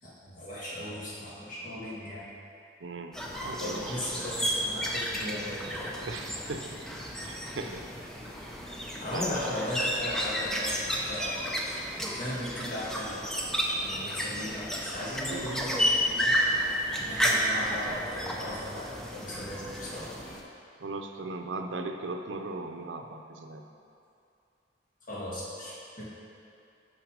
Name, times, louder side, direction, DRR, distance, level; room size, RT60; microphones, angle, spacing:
voice 1, 0.0-2.3 3.6-6.0 9.0-11.5 11.9-13.3 13.8-16.3 16.9-20.1 25.1-26.1, left 1 dB, 45° left, -7 dB, 1.8 m, -37 dB
voice 2, 2.8-3.1 3.4-3.8 6.1-6.7 7.2-7.8 8.5-8.6 9.1-9.4 15.2-15.6 20.8-23.6, right 3 dB, 85° right, 5 dB, 0.6 m, -38 dB
sound 1, 3.1-20.4, equal, 5° left, 0.6 m, -32 dB
6.1 x 5.8 x 5.1 m, 2.6 s
head